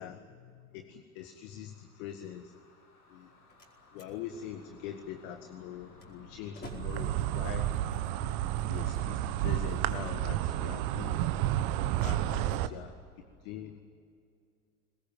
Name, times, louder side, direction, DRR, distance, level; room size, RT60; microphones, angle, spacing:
voice 1, 0.0-2.5 3.1-3.3 3.9-7.7 8.7-11.3 12.0-12.9 13.4-13.8, left 9 dB, 60° left, 7 dB, 1.8 m, -43 dB
sound 1, 1.3-11.0, left 3 dB, 85° left, 6.9 m, -55 dB
Slam, 3.0-9.0, left 2 dB, 20° left, 4.8 m, -55 dB
Insect, 6.6-12.7, right 13 dB, 55° right, 1.3 m, -31 dB
22.5 x 20.0 x 9.3 m, 2.4 s
hypercardioid pair, 80°, 45 cm